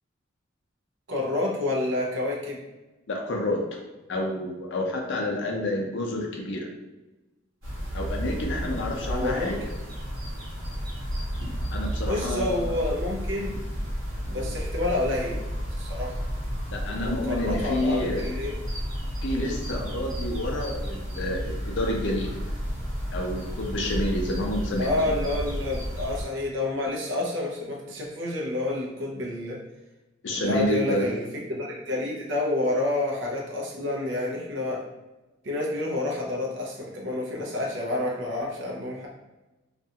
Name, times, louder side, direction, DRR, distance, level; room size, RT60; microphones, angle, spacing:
voice 1, 1.1-2.6 9.0-9.5 12.0-13.6 14.3-15.5 15.8-16.2 16.9-18.5 24.8-29.6 30.3-34.8 35.4-39.1, left 2 dB, 60° right, -2 dB, 0.6 m, -29 dB
voice 2, 3.1-3.8 4.1-6.7 7.9-9.6 11.7-12.8 14.3-14.5 16.7-18.2 19.2-22.4 23.1-25.1 30.2-31.1, left 1 dB, 60° left, 1 dB, 0.5 m, -29 dB
sound 1, 7.6-26.2, equal, 80° right, 1.0 m, -32 dB
2.5 x 2.3 x 2.7 m, 1.1 s
head